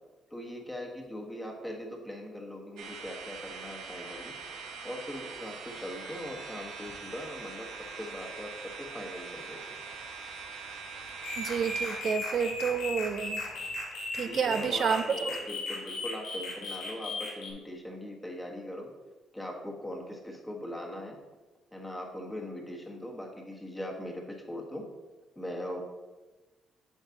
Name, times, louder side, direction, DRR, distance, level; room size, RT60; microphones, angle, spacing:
voice 1, 0.3-4.4 4.8-7.7 8.0-9.6 14.3-18.9 19.3-21.2 21.7-24.9 25.3-25.8, left 1 dB, 10° left, 1.4 m, -40 dB
sound 1, 2.8-12.0, right 5 dB, 80° right, 1.0 m, -43 dB
sound 2, 11.2-17.5, left 2 dB, 85° left, 1.7 m, -37 dB
voice 2, 11.4-13.4 14.1-15.1, right 6 dB, 55° right, 0.4 m, -29 dB
8.0 x 5.8 x 2.8 m
cardioid pair, 80°, 0 cm